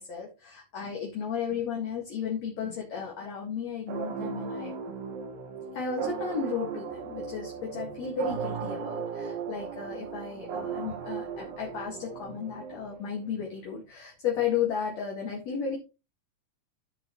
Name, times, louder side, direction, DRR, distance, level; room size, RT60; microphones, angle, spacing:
voice 1, 0.0-4.8 5.7-15.8, left 7 dB, 55° left, -2 dB, 2.9 m, -34 dB
sound 1, 3.9-13.3, right 6 dB, 80° right, 3.1 m, -37 dB
13.5 x 6.9 x 3.1 m, 0.29 s
omnidirectional pair, 3.9 m